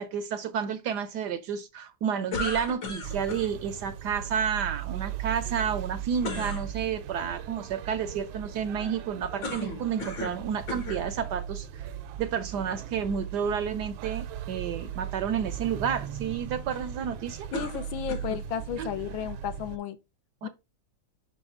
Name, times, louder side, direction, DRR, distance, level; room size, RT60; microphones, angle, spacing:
voice 1, 0.0-11.9 12.2-17.5 18.8-18.9 20.4-20.5, right 7 dB, 70° right, 1.0 m, -31 dB
sound 1, 2.3-3.5 6.2-6.6 9.4-10.4 10.7-11.0 11.8-11.9 17.5-18.4, left 2 dB, 65° left, 2.2 m, -35 dB
sound 2, 3.0-19.8, right 10 dB, 85° right, 1.4 m, -38 dB
voice 2, 17.5-20.0 20.4-20.5, left 9 dB, 80° left, 1.5 m, -33 dB
5.5 x 5.4 x 3.6 m
omnidirectional pair, 2.2 m